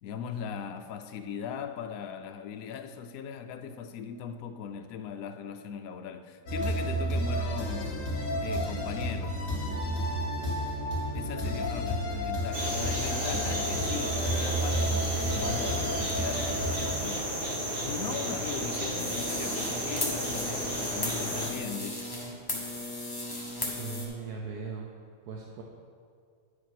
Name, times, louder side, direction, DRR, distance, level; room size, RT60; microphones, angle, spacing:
voice 1, 0.0-8.0 8.4-9.4 11.1-17.4 17.8-22.1, left 7 dB, 70° left, 0.9 m, -39 dB
sound 1, 6.5-17.0, equal, 50° left, 1.9 m, -31 dB
sound 2, 12.5-21.5, right 1 dB, 35° right, 1.6 m, -33 dB
sound 3, 19.0-24.1, left 1 dB, 15° left, 1.1 m, -36 dB
voice 2, 23.8-24.9 25.2-25.6, right 5 dB, 70° right, 1.2 m, -38 dB
9.5 x 4.9 x 5.9 m
omnidirectional pair, 1.9 m